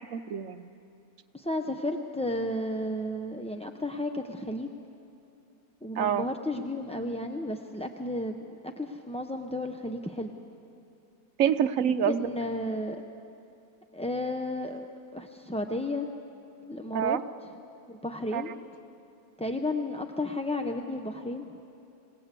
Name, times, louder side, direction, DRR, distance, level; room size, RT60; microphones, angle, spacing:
voice 1, 0.1-0.7 6.0-6.3 11.4-12.3 16.9-17.2 18.3-18.4, right 9 dB, 65° right, 11 dB, 1.1 m, -26 dB
voice 2, 1.3-4.8 5.8-10.3 11.9-13.0 13.9-14.8 15.1-16.1 16.6-17.2 17.9-18.5 19.4-21.4, left 1 dB, 5° left, 4 dB, 0.5 m, -33 dB
26.5 x 17.5 x 8.3 m, 2.6 s
omnidirectional pair, 1.5 m